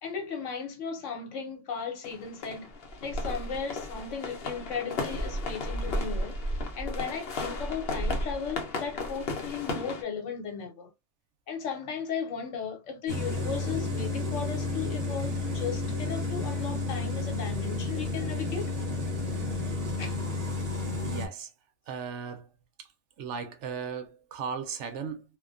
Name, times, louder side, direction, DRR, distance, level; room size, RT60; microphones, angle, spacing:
voice 1, 0.0-2.7 3.0-6.4 6.8-10.9 11.5-18.7 20.0-20.2, left 6 dB, 80° left, 1.1 m, -36 dB
sound 1, 2.0-10.0, left 1 dB, 60° left, 0.8 m, -34 dB
sound 2, 13.1-21.3, left 2 dB, 35° right, 0.7 m, -31 dB
voice 2, 21.0-21.5 21.9-22.5 22.8-22.9 23.2-25.2, right 6 dB, 75° right, 0.9 m, -36 dB
2.3 x 2.2 x 2.4 m
omnidirectional pair, 1.3 m